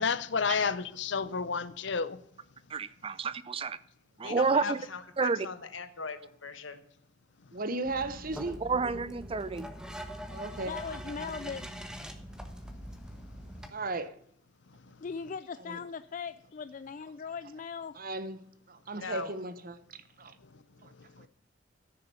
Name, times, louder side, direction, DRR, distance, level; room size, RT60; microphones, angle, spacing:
voice 1, 0.0-2.2, left 5 dB, 65° left, 0.7 m, -30 dB
voice 2, 2.7-3.8 4.2-4.8 5.2-5.5 8.6-9.7, right 4 dB, 30° right, 0.5 m, -29 dB
voice 3, 4.2-6.8 10.8-11.0 18.9-19.3, left 4 dB, 80° left, 1.4 m, -40 dB
voice 4, 7.5-8.6 10.3-10.7 13.7-14.1 15.6-15.8 17.9-18.4 18.7-20.3 20.8-20.9 21.2-21.3, right 2 dB, 45° right, 1.0 m, -36 dB
sound 1, 7.8-13.7, equal, 5° right, 1.3 m, -43 dB
voice 5, 10.6-11.7 15.0-17.9, left 5 dB, 40° left, 0.4 m, -39 dB
14.0 x 6.8 x 6.9 m
head